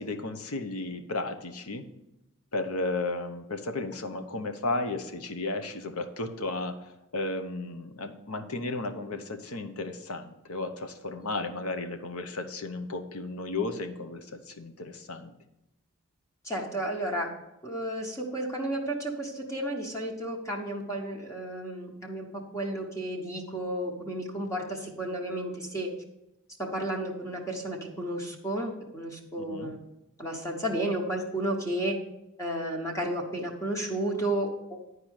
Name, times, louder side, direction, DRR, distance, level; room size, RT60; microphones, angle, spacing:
voice 1, 0.0-1.9 2.5-15.3 29.4-29.7, left 2 dB, 90° left, 7 dB, 0.9 m, -34 dB
voice 2, 16.4-17.3 17.6-22.3 22.5-25.9 26.6-29.8 30.2-32.0 32.4-34.8, right 1 dB, 15° left, 0 dB, 1.1 m, -32 dB
10.0 x 4.8 x 6.4 m, 0.92 s
head